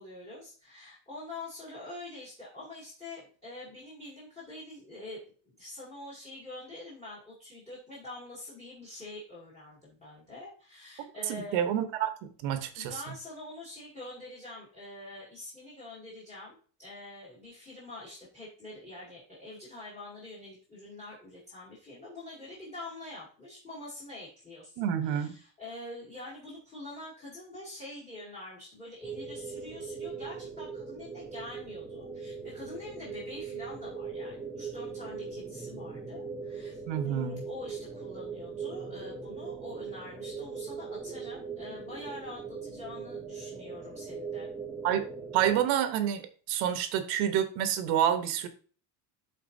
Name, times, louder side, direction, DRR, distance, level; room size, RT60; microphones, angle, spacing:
voice 1, 0.0-11.7 12.8-44.5, left 2 dB, 15° left, -5 dB, 2.3 m, -45 dB
voice 2, 11.3-12.9 24.8-25.3 36.9-37.4 44.8-45.1 45.3-48.5, right 10 dB, 75° right, 9 dB, 1.1 m, -28 dB
sound 1, 29.0-45.7, right 5 dB, 5° right, 0.7 m, -40 dB
12.5 x 4.2 x 2.6 m, 0.41 s
cardioid pair, 165°, 46 cm